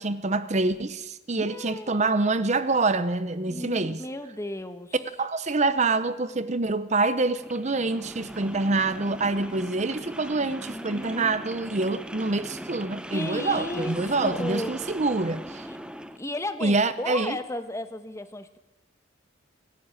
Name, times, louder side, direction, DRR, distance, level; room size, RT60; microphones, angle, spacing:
voice 1, 0.0-4.0 5.2-15.7 16.6-17.4, right 3 dB, 35° right, 13 dB, 0.8 m, -26 dB
voice 2, 1.4-2.2 3.5-5.0 10.6-11.4 13.1-14.7 15.7-15.8 16.2-18.6, left 1 dB, 15° left, 9 dB, 1.3 m, -34 dB
sound 1, 7.3-16.2, equal, 5° right, 0.9 m, -39 dB
28.5 x 11.5 x 8.9 m, 1.0 s
head